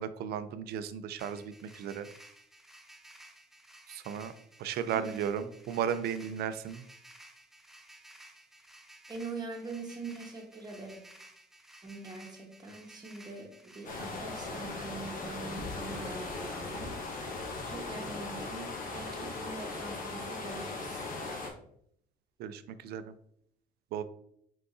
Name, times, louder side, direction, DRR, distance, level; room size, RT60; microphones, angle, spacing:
voice 1, 0.0-2.1 3.9-4.3 4.6-6.8 22.4-23.1 23.9-24.0, right 8 dB, 70° right, 12 dB, 0.4 m, -35 dB
sound 1, 1.2-13.9, right 1 dB, ahead, 0.5 m, -55 dB
voice 2, 4.9-5.4 9.1-11.0 11.8-16.9 17.7-18.7 18.9-21.1, right 3 dB, 25° right, 2 dB, 1.1 m, -43 dB
sound 2, 13.8-21.5, left 3 dB, 55° left, 1.0 m, -38 dB
4.6 x 3.9 x 2.5 m, 0.69 s
cardioid pair, 110°, 17 cm